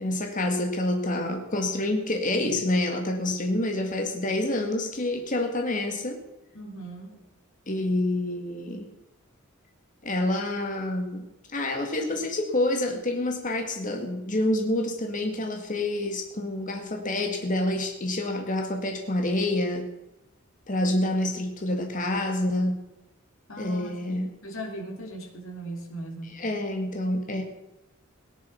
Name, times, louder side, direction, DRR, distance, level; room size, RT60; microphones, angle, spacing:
voice 1, 0.0-6.2 7.7-8.9 10.0-19.9 20.7-22.8 23.6-24.3 26.3-27.4, left 1 dB, 40° left, 3 dB, 2.0 m, -27 dB
voice 2, 6.5-7.2 23.5-26.4, right 1 dB, 70° left, 1 dB, 3.5 m, -38 dB
18.5 x 10.5 x 5.8 m, 0.92 s
head